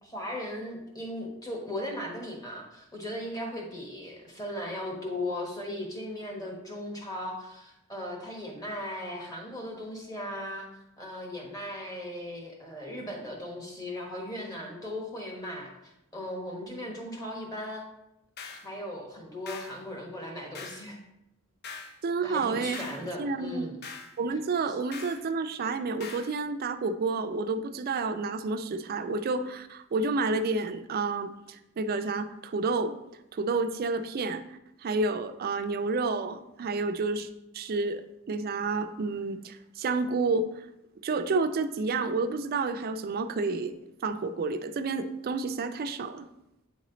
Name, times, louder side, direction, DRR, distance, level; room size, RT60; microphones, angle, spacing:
voice 1, 0.0-10.7 11.0-17.8 18.5-21.0 22.2-23.8 24.7-24.8, left 1 dB, 15° left, 0 dB, 1.1 m, -37 dB
sound 1, 18.4-18.7 19.5-19.8 20.5-20.9 21.6-22.0 22.7-23.1 23.8-24.1 24.9-25.2 26.0-26.3, left 4 dB, 50° left, 0.6 m, -42 dB
voice 2, 22.0-22.8 23.2-23.7 24.2-32.9 33.3-34.4 34.8-37.3 37.5-38.0 38.3-40.5 41.0-43.8 44.0-46.3, right 3 dB, 45° right, 10 dB, 0.4 m, -30 dB
8.3 x 3.1 x 3.9 m, 0.89 s
head